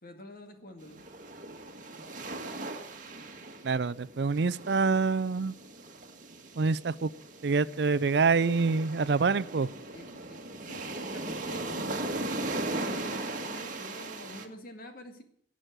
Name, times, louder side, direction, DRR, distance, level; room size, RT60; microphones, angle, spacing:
voice 1, 0.0-1.0 9.9-11.7 12.7-15.2, left 1 dB, 45° left, 5 dB, 2.1 m, -47 dB
sound 1, 0.8-14.5, right 2 dB, 40° right, 1.7 m, -38 dB
voice 2, 3.6-5.5 6.6-7.1 7.4-9.7, right 4 dB, 60° right, 18 dB, 0.5 m, -26 dB
17.5 x 6.3 x 9.4 m, 0.66 s
head